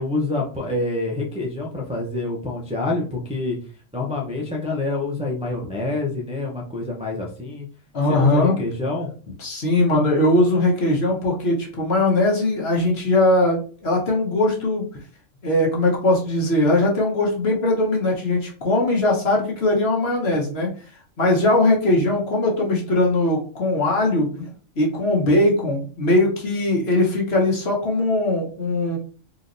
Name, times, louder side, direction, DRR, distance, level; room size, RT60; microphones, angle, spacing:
voice 1, 0.0-3.6 3.9-7.7 8.1-9.1, left 2 dB, 10° right, -3 dB, 0.4 m, -26 dB
voice 2, 7.9-8.5 9.4-14.9 15.4-20.7 21.2-24.5 24.8-29.0, left 2 dB, 55° left, -2 dB, 1.3 m, -20 dB
3.9 x 3.0 x 2.6 m, 0.40 s
omnidirectional pair, 1.4 m